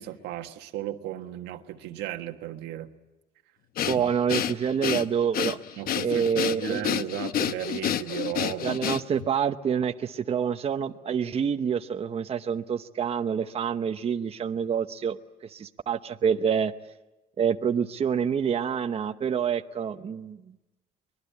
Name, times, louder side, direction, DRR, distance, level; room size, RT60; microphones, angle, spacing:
voice 1, 0.0-2.9 3.9-4.0 5.8-8.8, right 13 dB, 90° right, 6 dB, 1.5 m, -35 dB
Breathing, 3.8-9.3, left 10 dB, 60° left, 0.9 m, -29 dB
voice 2, 3.8-5.6 6.0-6.9 8.6-15.2 15.4-16.7 17.4-20.4, right 7 dB, 35° right, 8 dB, 0.9 m, -27 dB
24.0 x 20.5 x 8.4 m, 0.99 s
cardioid pair, 110°, 17 cm